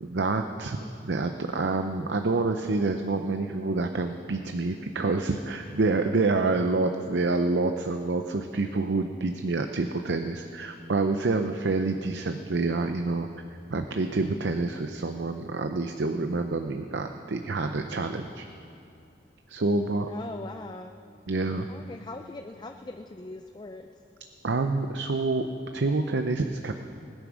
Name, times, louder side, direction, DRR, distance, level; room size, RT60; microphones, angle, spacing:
voice 1, 0.0-0.8 1.0-13.3 13.7-18.5 19.5-20.1 21.3-21.7 24.4-25.5 25.7-26.7, right 3 dB, 75° right, 6 dB, 0.6 m, -27 dB
voice 2, 19.7-20.9 21.7-23.9, left 2 dB, 25° left, 5 dB, 0.5 m, -41 dB
19.5 x 9.9 x 6.2 m, 2.6 s
head